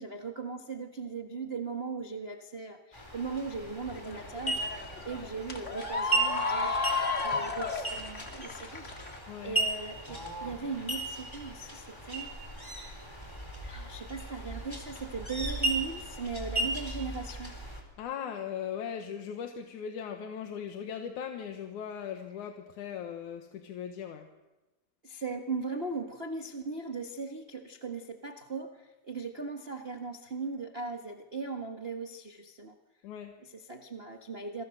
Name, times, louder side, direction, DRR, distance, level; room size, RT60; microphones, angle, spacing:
voice 1, 0.0-4.6 5.0-6.8 7.2-12.3 13.6-17.5 25.0-32.8 33.4-34.6, right 4 dB, 60° right, 2 dB, 0.6 m, -38 dB
sound 1, 2.9-17.8, right 2 dB, 5° left, 3.9 m, -36 dB
sound 2, 3.9-9.2, left 4 dB, 25° left, 2.1 m, -33 dB
voice 2, 9.3-9.6 18.0-24.3 33.0-33.3, left 8 dB, 65° left, 5 dB, 2.7 m, -39 dB
28.0 x 23.0 x 6.5 m, 1.1 s
omnidirectional pair, 3.9 m